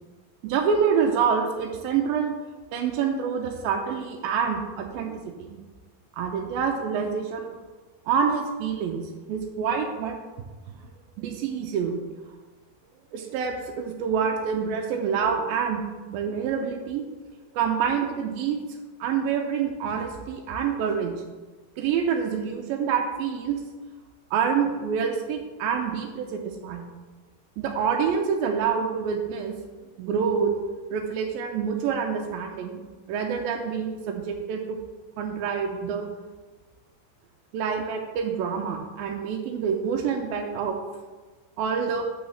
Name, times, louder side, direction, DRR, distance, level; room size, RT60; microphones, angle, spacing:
voice 1, 0.4-2.3 2.7-5.6 6.2-7.5 8.1-10.2 11.2-12.1 13.1-17.0 17.5-18.6 19.0-21.1 21.8-23.6 24.3-26.9 27.6-29.6 30.0-30.5 30.9-32.8 33.1-34.8 35.2-36.1 37.5-40.8 41.6-42.0, right 6 dB, 90° right, 2 dB, 2.5 m, -27 dB
7.1 x 5.7 x 6.3 m, 1.3 s
omnidirectional pair, 4.0 m